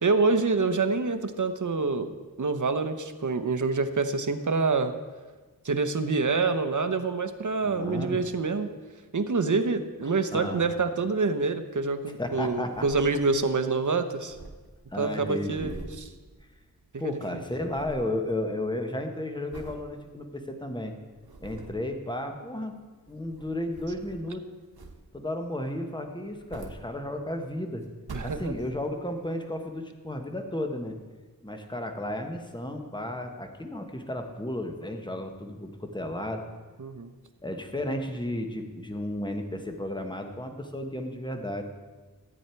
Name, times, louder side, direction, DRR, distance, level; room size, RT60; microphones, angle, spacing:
voice 1, 0.0-2.1 2.4-4.9 5.6-8.7 9.1-14.4 15.0-16.1 16.9-17.2 28.1-28.5 36.8-37.1, right 4 dB, 55° right, 9 dB, 0.9 m, -26 dB
voice 2, 7.6-8.2 10.0-10.6 12.2-12.9 14.9-15.8 17.0-20.9 21.4-22.8 23.1-24.5 25.1-27.8 28.2-31.0 31.4-36.5 37.4-41.6, left 1 dB, 10° left, 4 dB, 1.3 m, -33 dB
sound 1, 12.7-13.6 13.8-13.9 14.1-16.9 17.2-18.2 18.6-18.9 19.5-19.9 20.4-20.5 21.0-21.9 22.9-24.4 24.7-25.3 26.2-27.4 27.8-29.0 29.6-29.7, right 3 dB, 90° right, 1.2 m, -45 dB
14.0 x 8.7 x 4.6 m, 1.3 s
wide cardioid pair, 75°, 36 cm